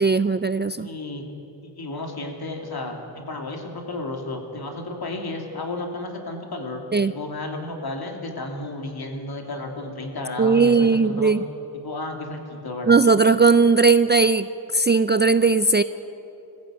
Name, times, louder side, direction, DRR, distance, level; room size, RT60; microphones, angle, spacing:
voice 1, 0.0-0.9 6.9-7.1 10.4-11.4 12.9-14.5 14.7-15.8, right 4 dB, 25° right, 12 dB, 0.4 m, -18 dB
voice 2, 0.7-1.2 1.6-11.3 11.8-13.0, left 2 dB, 55° left, 2 dB, 2.8 m, -33 dB
22.0 x 14.5 x 8.9 m, 2.8 s
wide cardioid pair, 125°, 43 cm